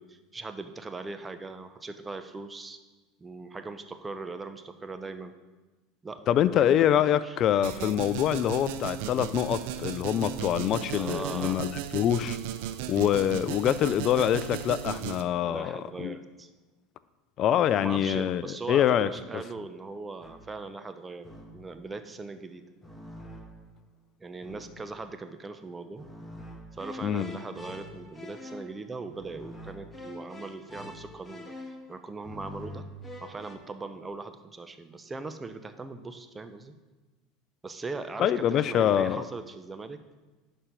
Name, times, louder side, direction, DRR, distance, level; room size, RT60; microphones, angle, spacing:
voice 1, 0.0-2.8 3.2-5.3 6.0-7.4 10.9-11.7 15.4-16.5 17.7-22.6 24.2-26.1 26.7-31.5 31.9-32.9 33.2-36.7 37.6-40.0, right 3 dB, 20° right, 0.8 m, -40 dB
voice 2, 6.3-12.4 12.9-16.1 17.4-19.1 27.0-27.3 38.2-39.2, left 10 dB, 45° left, 0.4 m, -25 dB
sound 1, 7.6-15.2, right 11 dB, 70° right, 0.5 m, -36 dB
sound 2, 20.2-20.7 21.2-21.8 22.8-23.8 24.4-25.0 26.0-33.6, left 1 dB, 10° left, 1.4 m, -45 dB
11.0 x 4.4 x 5.2 m
hypercardioid pair, 80°, 0 cm